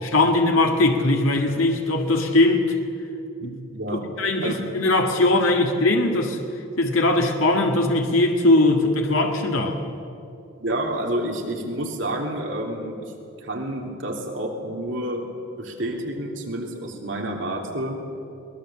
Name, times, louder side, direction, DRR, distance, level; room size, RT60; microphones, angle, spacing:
voice 1, 0.0-2.8 3.4-6.4 6.8-9.8, left 2 dB, 80° left, 2 dB, 1.9 m, -20 dB
voice 2, 3.7-4.0 4.4-4.6 10.6-13.1 13.4-15.3 15.6-18.0, right 1 dB, 60° right, 1 dB, 3.3 m, -29 dB
22.0 x 20.5 x 7.6 m, 2.6 s
head